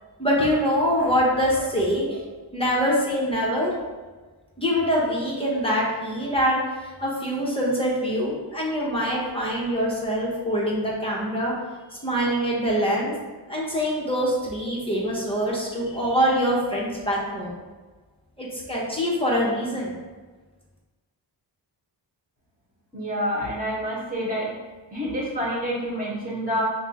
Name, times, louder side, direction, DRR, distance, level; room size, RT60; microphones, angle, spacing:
voice 1, 0.2-2.2 2.5-3.7 4.6-11.5 12.0-13.1 13.5-17.5 18.4-20.0, equal, 10° left, -5 dB, 0.9 m, -24 dB
voice 2, 22.9-24.5 24.9-26.6, equal, 20° right, -6 dB, 1.4 m, -28 dB
5.8 x 2.2 x 2.9 m, 1.3 s
wide cardioid pair, 135°, 44 cm